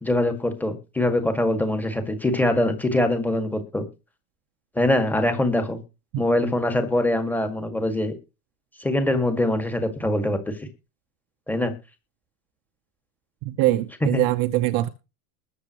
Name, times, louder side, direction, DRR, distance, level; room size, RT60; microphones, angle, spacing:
voice 1, 0.0-3.8 4.8-5.8 6.2-8.1 8.8-10.5 11.5-11.7 14.1-14.2, left 1 dB, 5° left, 7 dB, 1.9 m, -23 dB
voice 2, 13.4-14.9, right 16 dB, 45° right, 10 dB, 0.9 m, -23 dB
21.0 x 7.4 x 3.0 m, 0.29 s
supercardioid pair, 160°, 48 cm